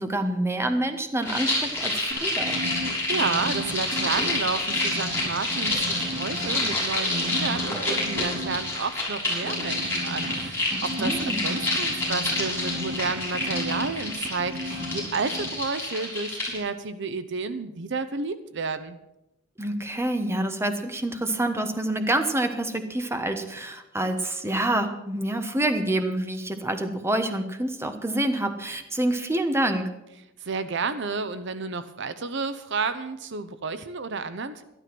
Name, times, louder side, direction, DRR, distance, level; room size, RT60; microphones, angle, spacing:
voice 1, 0.0-2.6 10.7-11.5 19.6-29.9, right 1 dB, 15° right, 7 dB, 1.1 m, -27 dB
sound 1, 1.2-16.6, left 1 dB, 10° left, 6.5 m, -28 dB
sound 2, 2.1-4.4 4.7-6.7 7.1-8.6 9.4-15.1 15.3-15.5, equal, 40° right, 2.5 m, -34 dB
voice 2, 2.7-11.1 11.4-19.0 30.4-34.6, right 4 dB, 60° right, 12 dB, 0.8 m, -31 dB
12.5 x 12.0 x 6.1 m, 0.89 s
head